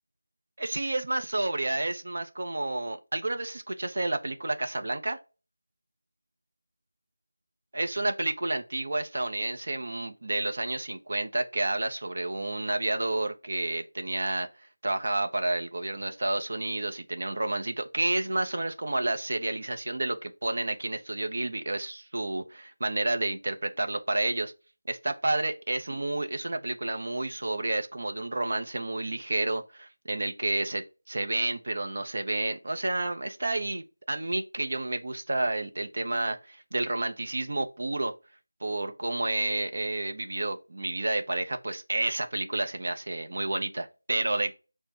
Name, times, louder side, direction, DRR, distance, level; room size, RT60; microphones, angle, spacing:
voice 1, 0.6-5.2 7.7-14.5 14.8-24.5 24.9-38.1 38.6-44.6, right 2 dB, 40° right, 0.8 m, -30 dB
5.8 x 2.2 x 4.2 m
figure-of-eight pair, 180°, 0 cm